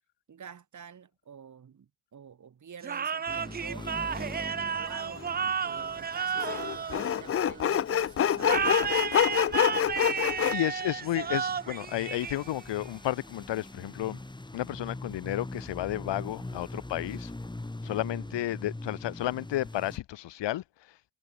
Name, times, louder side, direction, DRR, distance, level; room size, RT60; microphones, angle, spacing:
voice 1, 0.3-9.6 17.8-18.4, right 7 dB, 35° right, 3.4 m, -48 dB
sound 1, 2.8-7.7 8.4-12.8, right 6 dB, 20° right, 0.6 m, -32 dB
sound 2, 3.3-20.0, left 2 dB, 10° left, 3.4 m, -43 dB
Sawing, 5.2-5.3 6.4-10.5, left 9 dB, 30° left, 0.6 m, -26 dB
voice 2, 10.5-14.2 14.5-17.3 17.8-21.0, left 14 dB, 60° left, 2.1 m, -32 dB
cardioid pair, 100°, 49 cm